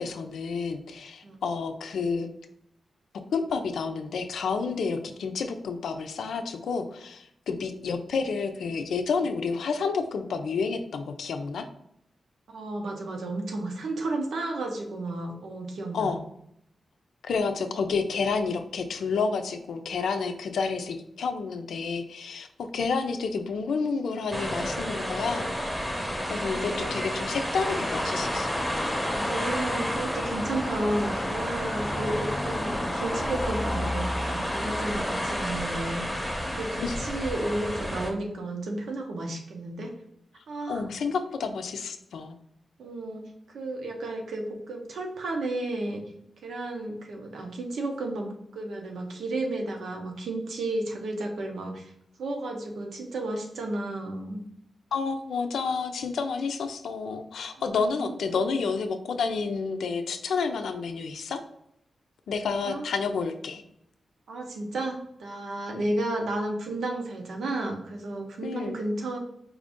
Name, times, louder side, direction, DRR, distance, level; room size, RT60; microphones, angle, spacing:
voice 1, 0.0-2.3 3.3-11.7 15.9-16.2 17.2-25.5 26.3-28.6 36.8-36.9 40.7-42.4 54.9-61.4 62.3-63.6 65.7-65.9 68.4-68.8, left 5 dB, 90° left, 7 dB, 0.4 m, -30 dB
voice 2, 12.5-16.1 26.4-27.0 29.1-36.0 36.5-39.9 40.5-40.8 42.8-43.2 43.5-46.0 46.4-51.9 52.2-54.4 57.8-58.1 62.7-62.9 64.3-69.2, right 2 dB, 85° right, 2 dB, 0.8 m, -32 dB
sound 1, 24.3-38.1, equal, 10° right, 0.8 m, -32 dB
sound 2, 27.6-35.4, left 1 dB, 10° left, 0.4 m, -33 dB
4.7 x 2.6 x 3.6 m, 0.74 s
wide cardioid pair, 105°, 0 cm